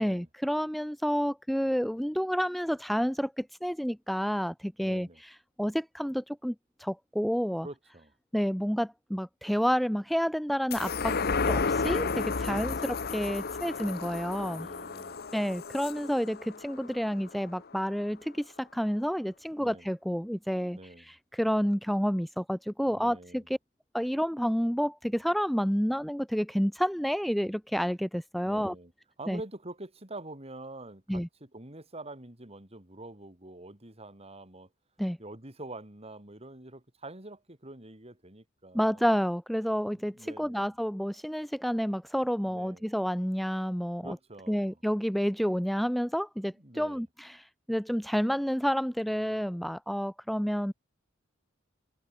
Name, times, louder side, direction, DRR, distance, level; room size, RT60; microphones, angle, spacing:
voice 1, 0.0-7.7 8.3-11.2 11.5-12.7 13.1-14.7 15.3-23.6 23.9-28.7 29.3-29.4 31.1-31.3 35.0-35.2 38.7-44.2 44.5-50.7, equal, ahead, 0.4 m, -30 dB
voice 2, 4.8-5.2 7.6-8.1 12.5-12.9 14.6-15.2 19.6-19.9 20.7-21.1 22.9-23.5 28.4-28.9 29.2-34.7 35.2-39.1 39.9-40.8 42.4-42.8 44.0-44.8 46.4-47.1, right 2 dB, 30° right, 3.5 m, -46 dB
sound 1, 10.7-17.5 17.9-18.0, left 4 dB, 50° left, 0.9 m, -32 dB
head